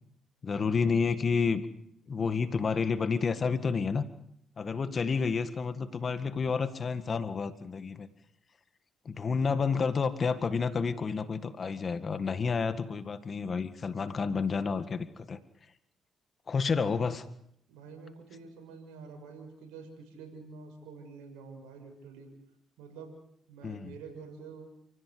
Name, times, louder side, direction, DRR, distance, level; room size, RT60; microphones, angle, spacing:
voice 1, 0.4-1.6 2.1-4.0 4.6-8.1 9.1-15.4 16.5-17.2 23.6-23.9, left 5 dB, 45° left, 10 dB, 1.8 m, -30 dB
voice 2, 16.7-17.1 17.7-22.3 22.8-23.1 23.5-24.7, right 5 dB, 90° right, 4 dB, 6.4 m, -47 dB
29.5 x 16.5 x 7.9 m, 0.73 s
supercardioid pair, 65°, 0 cm